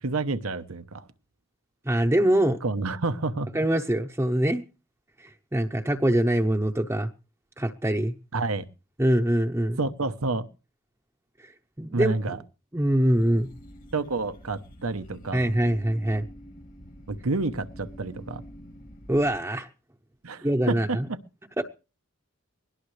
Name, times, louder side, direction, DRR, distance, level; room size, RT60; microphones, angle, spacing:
voice 1, 0.0-1.1 2.6-3.5 8.3-8.7 9.8-10.5 11.9-12.4 13.9-15.5 17.1-18.4 20.2-21.2, right 3 dB, 90° right, 10 dB, 1.0 m, -29 dB
voice 2, 1.9-2.6 3.5-4.6 5.2-7.1 7.6-8.1 9.0-9.8 11.8-12.3 12.7-13.5 15.3-16.2 19.1-19.7 20.4-21.1 21.6-21.7, right 1 dB, 10° right, 2 dB, 0.8 m, -24 dB
sound 1, 13.1-19.4, equal, 40° left, 1.6 m, -47 dB
21.0 x 17.5 x 3.3 m, 0.35 s
head